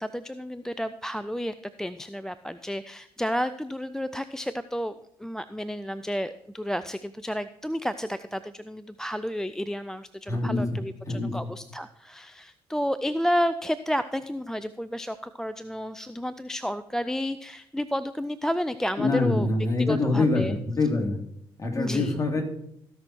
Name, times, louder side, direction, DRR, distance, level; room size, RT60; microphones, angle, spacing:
voice 1, 0.0-4.9 5.2-19.5 19.8-20.6 21.8-22.2, equal, 5° left, 11 dB, 0.5 m, -31 dB
voice 2, 10.3-11.3 19.0-21.2 21.6-22.4, left 3 dB, 30° left, 2 dB, 3.0 m, -25 dB
15.5 x 6.1 x 4.5 m, 0.76 s
hypercardioid pair, 45°, 11 cm